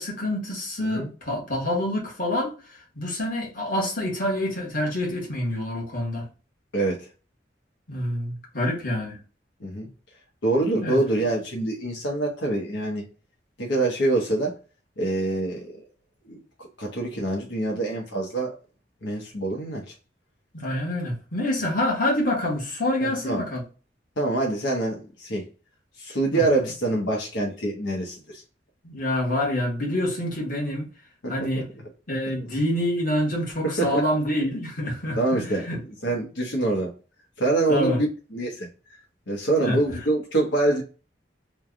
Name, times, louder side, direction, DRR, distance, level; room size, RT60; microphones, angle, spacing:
voice 1, 0.0-2.5 2.9-6.3 7.9-9.2 10.8-11.0 20.5-23.6 26.3-26.4 28.8-30.9 31.3-31.7 32.1-35.8 37.7-38.0 39.6-39.8, left 1 dB, 50° left, 1.4 m, -27 dB
voice 2, 6.7-7.1 9.6-9.9 10.4-13.1 13.6-14.6 15.0-15.8 16.3-18.5 19.0-19.9 21.6-21.7 23.0-23.4 24.2-25.5 26.0-28.4 31.2-31.8 33.6-34.0 35.2-36.9 37.4-38.7 39.3-40.8, right 2 dB, 85° left, 1.0 m, -25 dB
3.3 x 2.2 x 3.6 m
head